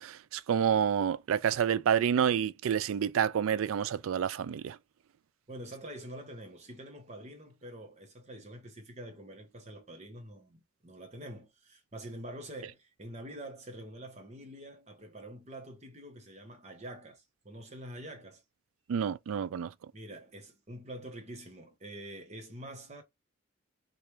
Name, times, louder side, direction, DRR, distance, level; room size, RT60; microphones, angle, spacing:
voice 1, 0.0-4.8 18.9-19.7, right 8 dB, 80° right, 0.3 m, -28 dB
voice 2, 5.5-18.4 19.9-23.0, right 1 dB, 35° right, 1.0 m, -46 dB
3.3 x 2.4 x 4.4 m
head